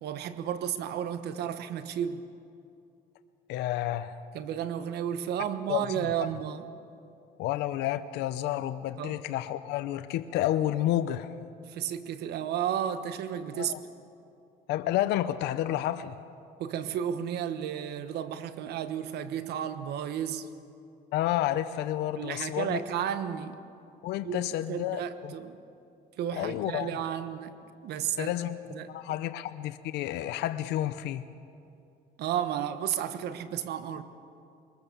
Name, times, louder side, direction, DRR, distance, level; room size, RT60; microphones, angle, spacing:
voice 1, 0.0-2.2 4.3-6.7 9.0-9.2 11.7-13.7 16.6-20.5 22.2-23.6 24.2-24.4 24.7-25.6 26.2-27.5 27.8-28.3 28.7-28.9 32.2-34.0, right 9 dB, 75° right, 11 dB, 1.2 m, -32 dB
voice 2, 3.5-4.2 5.7-5.9 7.4-11.3 13.5-13.8 14.7-16.2 21.1-22.8 24.0-25.3 26.4-27.0 28.2-31.3, left 13 dB, 85° left, 11 dB, 0.7 m, -30 dB
22.5 x 20.5 x 6.9 m, 2.6 s
cardioid pair, 110°, 17 cm